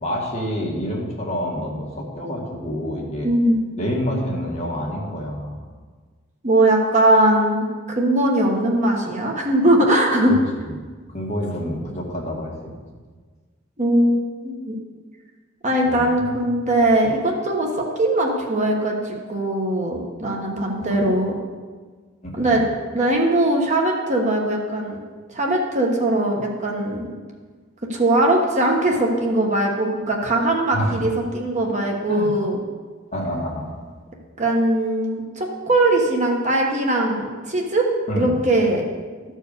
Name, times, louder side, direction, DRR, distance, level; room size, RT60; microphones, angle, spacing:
voice 1, 0.0-3.3 3.8-5.6 10.3-10.7 11.1-12.7 15.8-16.4 22.2-22.6 30.7-31.0 32.1-32.4 33.1-33.7 38.1-38.4, equal, 30° left, -2 dB, 1.9 m, -28 dB
voice 2, 3.2-4.2 6.4-10.3 13.8-14.8 15.6-21.3 22.3-22.6 22.9-25.0 25.3-27.1 27.9-32.6 34.4-37.9 38.2-38.8, right 1 dB, 35° right, 0 dB, 1.2 m, -20 dB
13.0 x 4.6 x 6.7 m, 1.5 s
head